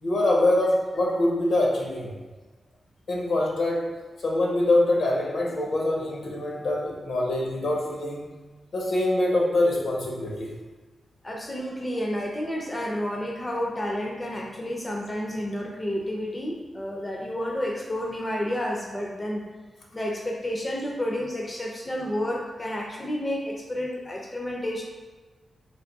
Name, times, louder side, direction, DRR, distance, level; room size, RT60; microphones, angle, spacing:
voice 1, 0.0-2.2 3.1-3.9 4.2-8.3 8.7-10.5, left 1 dB, 65° left, -2 dB, 0.8 m, -24 dB
voice 2, 11.2-19.4 19.9-24.8, left 1 dB, 15° left, -1 dB, 0.4 m, -30 dB
3.4 x 2.8 x 3.9 m, 1.3 s
wide cardioid pair, 175°, 0 cm